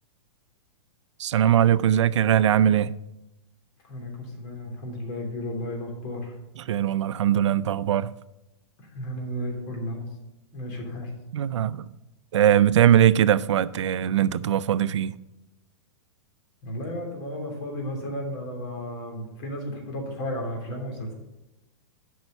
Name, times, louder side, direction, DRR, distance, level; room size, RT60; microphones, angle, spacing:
voice 1, 1.2-2.9 6.6-8.1 11.3-11.9 12.3-15.1, right 10 dB, 80° right, 0.4 m, -21 dB
voice 2, 3.8-6.4 8.9-10.0 10.5-11.1 16.6-21.1, left 1 dB, 50° left, 3.1 m, -33 dB
8.0 x 5.5 x 6.8 m
hypercardioid pair, 130°, 15 cm